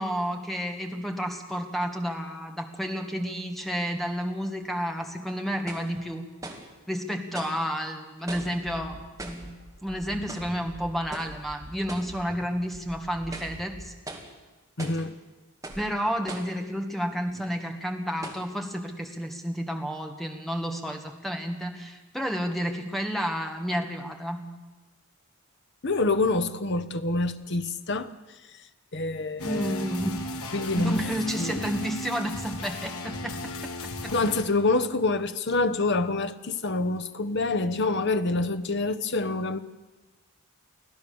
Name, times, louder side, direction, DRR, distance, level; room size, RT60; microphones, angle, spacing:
voice 1, 0.0-6.3 6.9-9.5 9.8-13.9 15.8-24.5 29.4-30.3 30.8-33.4, equal, ahead, 1.8 m, -31 dB
sound 1, 4.6-4.7 5.7-5.9 6.4-6.7 7.3-7.6 8.3-8.6 9.2-9.5 10.3-10.6 11.1-11.4 11.9-12.2 12.6-12.7 13.2-13.6 14.1-14.3 14.8-15.1 15.6-15.9 16.3-16.6 17.3-17.4 18.2-18.5, right 2 dB, 15° right, 2.3 m, -40 dB
sound 2, 8.3-13.9, equal, 70° right, 4.1 m, -46 dB
voice 2, 14.8-15.1 25.8-28.1 28.9-29.9 30.5-31.0 31.4-31.7 34.1-39.6, left 3 dB, 50° left, 1.0 m, -26 dB
sound 3, 29.4-34.4, left 1 dB, 85° left, 2.1 m, -35 dB
25.0 x 16.0 x 7.1 m
head